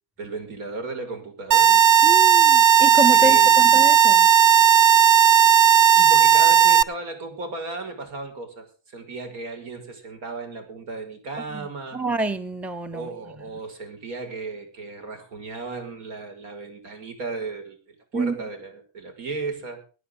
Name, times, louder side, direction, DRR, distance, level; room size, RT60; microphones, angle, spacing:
voice 1, 0.2-1.8 3.1-3.7 6.0-12.0 12.9-19.8, right 3 dB, 75° right, 6.1 m, -35 dB
sound 1, 1.5-6.8, right 9 dB, 40° right, 0.7 m, -15 dB
voice 2, 2.0-4.3 11.5-13.1 18.1-18.4, right 2 dB, 5° right, 0.7 m, -28 dB
23.0 x 9.7 x 3.9 m
cardioid pair, 125°, 50 cm